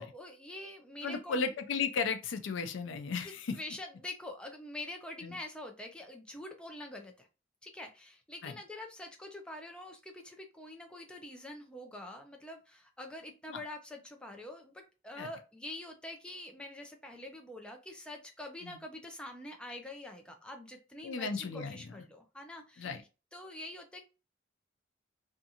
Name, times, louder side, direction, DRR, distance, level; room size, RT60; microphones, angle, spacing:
voice 1, 0.0-1.4 3.5-7.3 7.6-24.0, left 1 dB, 5° left, 0.4 m, -45 dB
voice 2, 1.0-3.6 5.2-5.4 8.4-8.6 13.5-13.6 15.2-15.3 18.6-18.8 21.0-21.9 22.8-23.0, left 5 dB, 85° left, 0.4 m, -35 dB
2.5 x 2.4 x 2.7 m
head